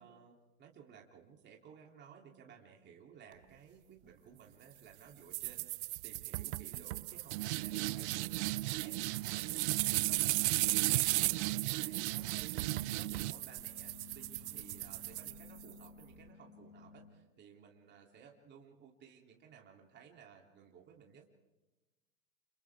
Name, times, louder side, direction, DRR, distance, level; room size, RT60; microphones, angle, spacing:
voice 1, 0.0-9.0 9.3-10.3 10.6-21.2, right 7 dB, 25° right, 0 dB, 3.2 m, -58 dB
sound 1, 5.3-15.9, right 19 dB, 55° right, 0.6 m, -35 dB
sound 2, 7.0-17.1, left 5 dB, 75° left, 7.3 m, -59 dB
29.5 x 28.5 x 3.7 m, 1.1 s
hypercardioid pair, 120°, 41 cm